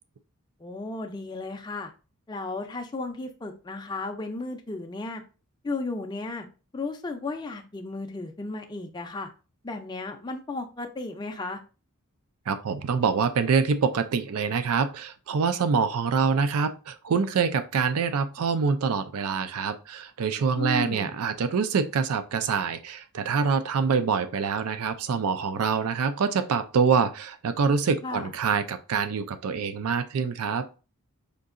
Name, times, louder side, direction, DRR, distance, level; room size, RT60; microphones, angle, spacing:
voice 1, 0.6-1.9 2.3-5.2 5.6-6.5 6.7-9.3 9.6-11.6 20.5-21.1 28.0-28.3, left 3 dB, 20° left, 0.4 m, -34 dB
voice 2, 12.5-30.7, right 5 dB, 75° right, 0.4 m, -25 dB
5.1 x 2.7 x 2.5 m
head